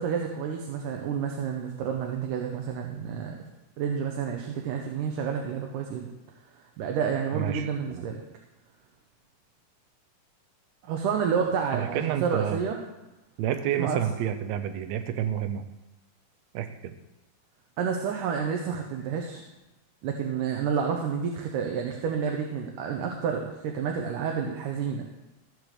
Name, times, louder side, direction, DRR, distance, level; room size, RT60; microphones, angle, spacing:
voice 1, 0.0-3.5 3.8-6.1 6.8-8.2 10.8-12.8 13.8-14.0 17.8-19.5 20.0-25.1, right 7 dB, 85° right, 2 dB, 2.5 m, -29 dB
voice 2, 7.3-8.0 11.7-12.6 13.4-15.6 16.5-16.9, right 10 dB, 70° right, 8 dB, 1.8 m, -29 dB
14.5 x 5.0 x 6.6 m, 0.98 s
omnidirectional pair, 3.6 m